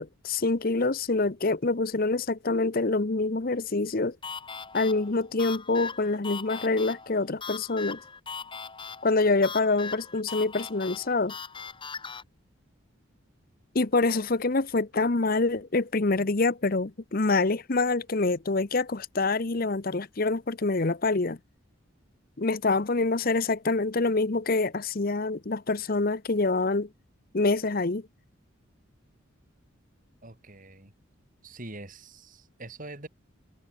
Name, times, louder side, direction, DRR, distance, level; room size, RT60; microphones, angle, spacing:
voice 1, 0.0-4.2 4.7-8.0 9.0-11.3 13.7-21.4 22.4-26.9 27.3-28.1, left 3 dB, 45° left, 0.9 m, -26 dB
sound 1, 4.2-12.2, left 5 dB, 25° left, 1.8 m, -40 dB
voice 2, 30.2-30.9 31.4-33.1, right 2 dB, 40° right, 3.4 m, -44 dB
head